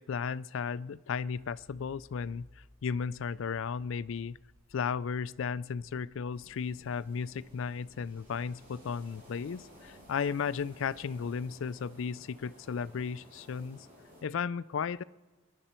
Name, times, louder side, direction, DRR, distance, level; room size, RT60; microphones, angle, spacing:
voice 1, 0.0-4.4 4.7-13.9 14.2-15.0, left 6 dB, 70° left, 18 dB, 0.4 m, -35 dB
sound 1, 1.3-11.0, left 1 dB, 20° right, 6.6 m, -63 dB
sound 2, 6.3-14.2, equal, 45° right, 7.0 m, -56 dB
26.0 x 11.0 x 4.4 m, 1.3 s
head